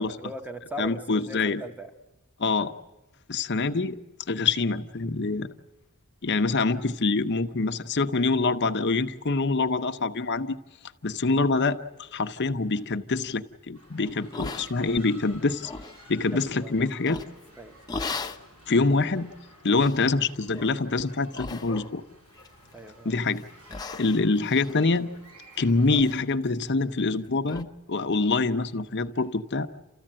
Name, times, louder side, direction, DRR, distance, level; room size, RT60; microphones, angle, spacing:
voice 1, 0.0-1.9 16.1-16.8 17.6-17.8 22.7-23.1, right 1 dB, 5° right, 7 dB, 1.0 m, -39 dB
voice 2, 0.8-1.6 2.4-2.7 3.3-4.0 4.3-5.5 6.2-10.6 11.0-15.7 16.1-17.2 18.7-19.3 19.6-22.0 23.0-23.4 24.0-25.1 25.6-29.7, left 3 dB, 50° left, 8 dB, 0.8 m, -25 dB
sound 1, 13.7-26.2, equal, 75° right, 7.1 m, -53 dB
sound 2, 14.3-15.1 15.5-16.0 17.0-17.5 17.9-18.4 19.0-19.1 19.7-20.1 20.5-20.8 21.3-22.0 22.4-22.9 23.3-23.4 23.7-25.5 25.9-26.2 26.5-26.6 27.0-27.1 27.5-27.6, left 3 dB, 20° left, 0.7 m, -37 dB
29.0 x 14.5 x 8.8 m, 1.1 s
head